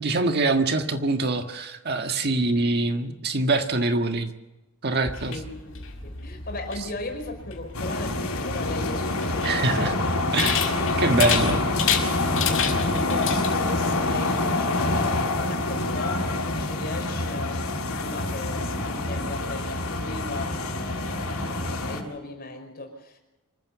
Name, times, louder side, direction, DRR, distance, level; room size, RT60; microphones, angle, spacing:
voice 1, 0.0-4.3 4.8-5.3 9.4-10.0 10.3-10.6 11.0-11.6, right 2 dB, 50° right, 6 dB, 1.6 m, -24 dB
sound 1, 5.1-13.5, left 8 dB, 65° left, 5.5 m, -31 dB
voice 2, 5.2-10.2 10.7-11.8 12.5-23.2, left 2 dB, 45° left, 4 dB, 5.5 m, -37 dB
sound 2, 7.7-22.0, left 2 dB, 90° left, 5.4 m, -26 dB
26.0 x 15.0 x 7.1 m, 1.0 s
head